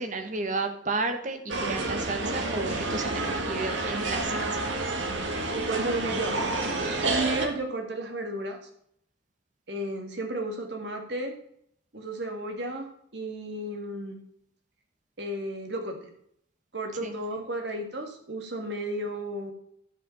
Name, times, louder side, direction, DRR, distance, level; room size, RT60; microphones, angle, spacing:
voice 1, 0.0-4.6 17.0-17.1, right 3 dB, 40° right, 7 dB, 1.4 m, -32 dB
sound 1, 1.5-7.5, right 2 dB, 85° right, 1.8 m, -29 dB
voice 2, 5.6-6.5 6.8-8.6 9.7-11.3 11.9-12.9 13.1-14.2 15.2-16.0 16.7-19.5, right 1 dB, 65° right, 3 dB, 1.7 m, -33 dB
11.5 x 5.1 x 6.9 m, 0.69 s
head